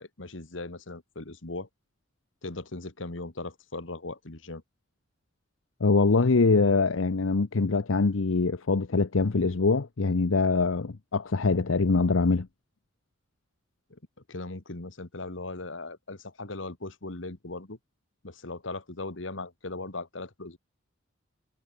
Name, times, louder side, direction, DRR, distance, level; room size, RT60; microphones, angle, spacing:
voice 1, 0.0-1.7 2.4-4.6 13.9-14.0 14.3-17.8 18.2-20.6, left 2 dB, 70° left, 1.9 m, -38 dB
voice 2, 5.8-12.5, left 3 dB, 90° left, 0.8 m, -23 dB
head